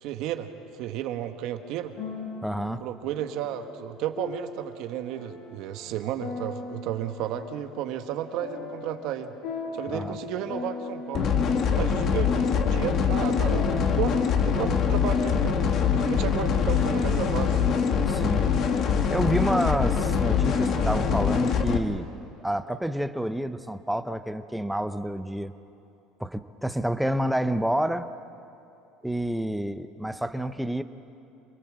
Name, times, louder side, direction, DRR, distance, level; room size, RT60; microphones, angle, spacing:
voice 1, 0.0-1.9 2.8-9.3 9.7-11.3 11.8-12.3 12.7-15.6 15.9-17.6, right 11 dB, 60° right, 7 dB, 1.5 m, -33 dB
sound 1, 1.7-14.8, left 4 dB, 65° left, 5.2 m, -40 dB
voice 2, 2.4-2.8 9.9-10.2 18.1-18.7 19.1-22.1 22.4-25.5 26.2-28.1 29.0-30.8, right 1 dB, ahead, 10 dB, 0.7 m, -29 dB
sound 2, 11.1-21.8, left 6 dB, 35° left, 1.7 m, -24 dB
28.0 x 21.5 x 7.6 m, 2.9 s
cardioid pair, 165°, 0 cm